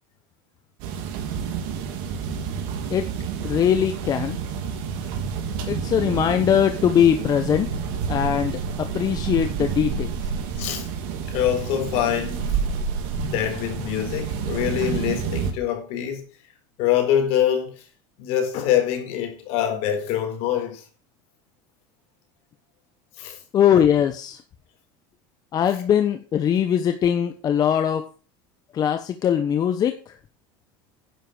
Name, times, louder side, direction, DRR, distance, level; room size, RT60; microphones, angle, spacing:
sound 1, 0.8-15.5, right 6 dB, 70° right, 3.4 m, -29 dB
voice 1, 3.4-4.4 5.7-7.7 8.1-10.2 23.5-24.4 25.5-28.0 28.7-30.1, left 9 dB, 35° left, 1.1 m, -21 dB
voice 2, 10.6-10.9 11.3-12.6 13.2-16.2 16.8-17.9 18.2-20.8 23.2-23.4, left 10 dB, 60° left, 4.2 m, -24 dB
10.5 x 7.6 x 6.2 m
supercardioid pair, 130°, 12 cm